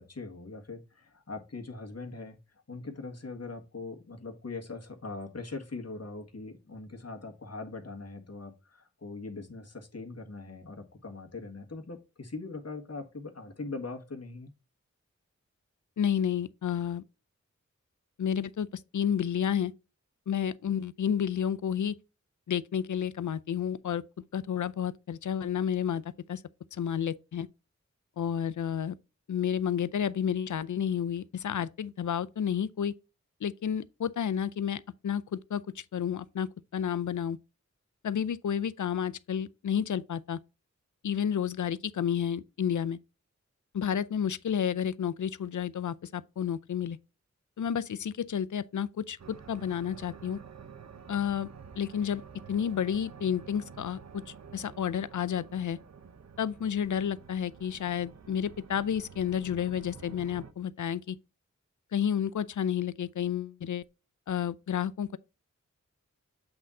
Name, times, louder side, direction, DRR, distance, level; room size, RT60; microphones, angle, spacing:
voice 1, 0.0-2.4 2.7-14.5, left 3 dB, 60° left, 1.7 m, -41 dB
voice 2, 16.0-17.0 18.2-19.7 20.3-21.9 22.5-24.0 24.3-26.0 26.3-26.4 26.7-27.5 28.2-29.0 29.3-32.9 33.4-37.4 38.0-40.4 41.0-43.0 43.7-47.0 47.6-50.4 51.1-51.5 51.8-52.2 52.5-55.8 56.4-61.2 61.9-63.8 64.3-65.2, left 8 dB, 80° left, 0.5 m, -31 dB
sound 1, 49.2-60.5, right 6 dB, 65° right, 0.7 m, -49 dB
7.9 x 3.8 x 4.2 m
cardioid pair, 40°, 29 cm